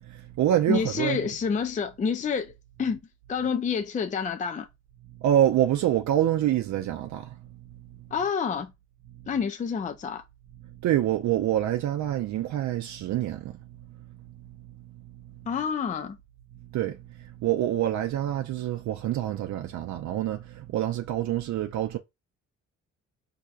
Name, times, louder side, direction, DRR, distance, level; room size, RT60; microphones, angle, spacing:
voice 1, 0.1-1.2 5.2-7.4 10.8-13.6 16.7-22.0, right 12 dB, 70° right, 0.5 m, -26 dB
voice 2, 0.7-2.5 2.8-3.0 3.3-4.7 8.1-8.7 9.3-10.2 15.5-16.2, left 6 dB, 25° left, 0.5 m, -28 dB
4.3 x 2.8 x 2.4 m
cardioid pair, 90°, 30 cm